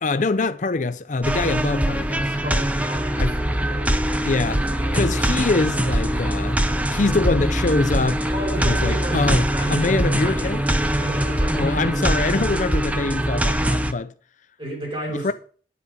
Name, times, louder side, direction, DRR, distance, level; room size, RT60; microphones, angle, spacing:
voice 1, 0.0-2.4 3.2-3.3 4.2-4.7 4.9-6.6 6.9-8.2 8.6-10.6 11.5-14.1 15.2-15.3, left 3 dB, 45° left, 0.6 m, -24 dB
sound 1, 1.2-13.9, right 1 dB, 10° right, 0.7 m, -22 dB
voice 2, 2.4-3.9 8.2-10.5 11.0-11.9 14.6-15.3, right 1 dB, 30° right, 5.5 m, -33 dB
sound 2, 2.9-12.0, left 1 dB, 80° right, 7.8 m, -40 dB
11.0 x 9.7 x 5.3 m
head